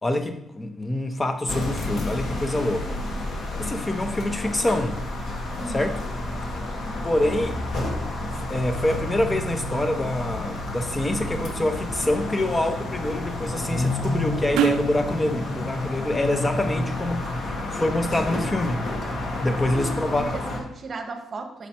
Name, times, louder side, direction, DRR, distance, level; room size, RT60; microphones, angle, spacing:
voice 1, 0.0-3.0 3.6-5.0 5.7-6.0 7.0-7.6 8.3-18.8 19.4-20.2, left 1 dB, 20° left, 7 dB, 0.7 m, -26 dB
sound 1, 1.5-20.6, left 2 dB, 60° left, 1.2 m, -30 dB
voice 2, 5.6-6.0 6.7-7.0 19.5-21.7, right 3 dB, 45° right, 6 dB, 0.9 m, -36 dB
sound 2, 6.3-15.0, right 10 dB, 90° right, 0.3 m, -35 dB
6.0 x 4.1 x 4.4 m, 0.82 s
cardioid pair, 90°, 0 cm